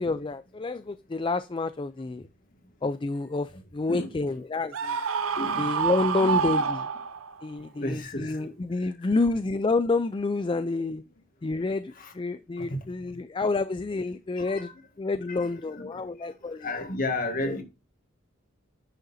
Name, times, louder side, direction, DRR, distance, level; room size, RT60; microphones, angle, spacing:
voice 1, 0.0-2.2 2.8-5.0 5.6-6.8 7.4-11.0 11.4-14.7 15.0-16.7 17.5-17.6, left 3 dB, 25° left, 0.3 m, -28 dB
Screaming, 4.7-7.4, right 6 dB, 70° right, 0.6 m, -27 dB
voice 2, 5.4-5.7 6.2-6.5 7.8-8.4 12.0-12.1 12.7-12.8 14.5-14.7 15.3-16.0 16.6-17.6, left 2 dB, 40° left, 1.8 m, -32 dB
10.0 x 6.5 x 2.6 m
head